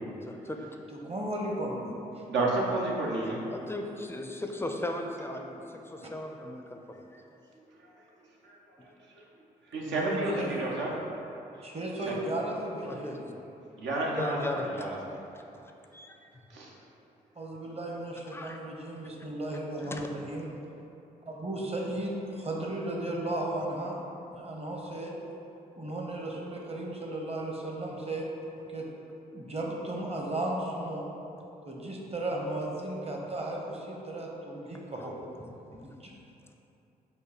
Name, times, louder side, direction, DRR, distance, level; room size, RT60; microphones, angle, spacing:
voice 1, 0.2-0.8 3.5-7.2 8.8-8.9 12.8-13.2 14.2-16.3 18.3-18.6 19.8-20.1 35.7-35.9, left 1 dB, 10° left, 3 dB, 0.5 m, -38 dB
voice 2, 1.0-1.9 2.1-2.3 9.8-10.5 11.6-13.4 17.4-20.5 21.3-24.0 24.3-25.1 25.8-28.2 28.7-28.8 29.3-31.0 31.6-36.1, right 1 dB, 30° right, -1 dB, 0.9 m, -35 dB
voice 3, 2.3-3.4 8.4-8.5 9.7-11.0 12.1-12.2 13.8-14.4 14.8-14.9 16.5-16.7, right 2 dB, 70° right, -3 dB, 0.8 m, -30 dB
4.4 x 2.6 x 3.9 m, 2.8 s
hypercardioid pair, 40°, 19 cm